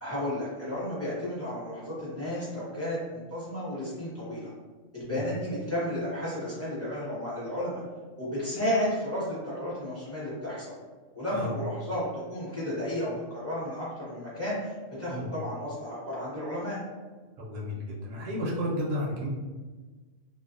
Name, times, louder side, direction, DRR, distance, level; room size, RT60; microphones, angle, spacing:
voice 1, 0.0-4.5 4.9-7.8 8.2-10.7 11.1-16.8, left 1 dB, 15° left, -9 dB, 0.6 m, -33 dB
voice 2, 17.4-19.3, equal, 60° right, -4 dB, 0.7 m, -32 dB
2.4 x 2.1 x 2.5 m, 1.4 s
omnidirectional pair, 1.3 m